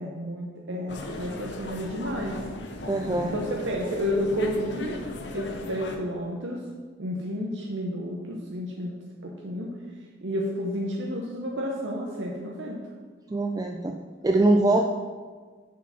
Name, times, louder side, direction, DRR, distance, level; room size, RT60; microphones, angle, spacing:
voice 1, 0.0-2.4 3.2-5.0 5.3-6.7 7.0-9.0 9.2-9.8 10.2-12.8 14.7-14.8, equal, 80° right, -1 dB, 0.9 m, -31 dB
sound 1, 0.9-6.0, left 2 dB, 70° left, 0.8 m, -38 dB
voice 2, 2.9-3.4 13.3-14.0 14.2-14.8, right 2 dB, 20° right, 2 dB, 0.3 m, -22 dB
7.1 x 5.0 x 5.8 m, 1.5 s
head